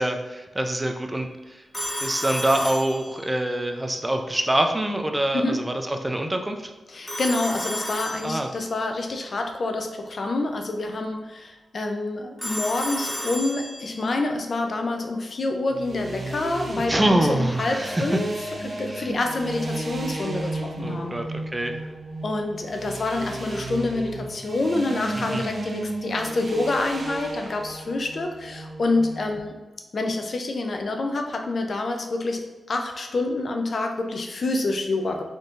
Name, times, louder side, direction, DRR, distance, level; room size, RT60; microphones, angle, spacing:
voice 1, 0.0-1.6 2.0-6.7 8.2-8.5 16.9-18.3 18.9-19.1 20.8-21.8 25.2-25.4, right 1 dB, 20° right, 5 dB, 0.5 m, -25 dB
Telephone, 1.7-3.5 7.1-8.7 12.4-14.1, left 1 dB, 20° left, 1.2 m, -32 dB
voice 2, 6.9-18.3 18.6-21.2 22.2-29.5 29.9-35.2, left 2 dB, 60° left, 4 dB, 0.5 m, -27 dB
sound 1, 15.7-29.4, right 2 dB, 55° right, 0.7 m, -34 dB
4.0 x 3.6 x 2.5 m, 1.2 s
cardioid pair, 50°, 0 cm